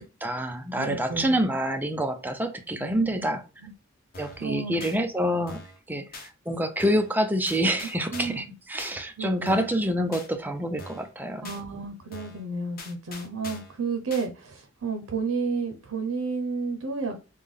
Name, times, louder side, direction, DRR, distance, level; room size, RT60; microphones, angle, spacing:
voice 1, 0.0-3.4 4.2-5.6 5.9-11.5, equal, 10° right, 0.4 m, -27 dB
voice 2, 0.8-1.4 2.8-3.2 3.6-3.7 4.4-4.8 8.1-8.5 9.2-9.6 11.4-17.2, right 4 dB, 85° right, 0.6 m, -31 dB
sound 1, 4.1-4.5 4.8-5.0 5.5-5.8 6.1-6.3 6.8-7.1 7.5-8.5 8.8-9.0 9.5-9.8 10.1-10.3 10.8-11.1 11.4-11.6 12.1-12.4 12.8-13.8 14.1-14.3, left 2 dB, 45° left, 0.8 m, -42 dB
3.4 x 2.2 x 3.5 m
head